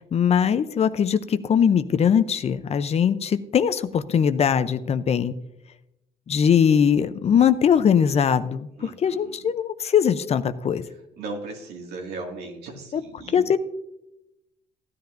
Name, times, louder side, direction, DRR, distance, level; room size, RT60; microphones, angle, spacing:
voice 1, 0.1-5.4 6.3-10.8 12.9-13.0 13.3-13.6, left 8 dB, 40° left, 12 dB, 0.6 m, -21 dB
voice 2, 8.8-9.5 11.2-13.5, right 3 dB, 75° right, 2 dB, 2.1 m, -37 dB
15.5 x 10.5 x 2.6 m, 0.87 s
cardioid pair, 110°, 17 cm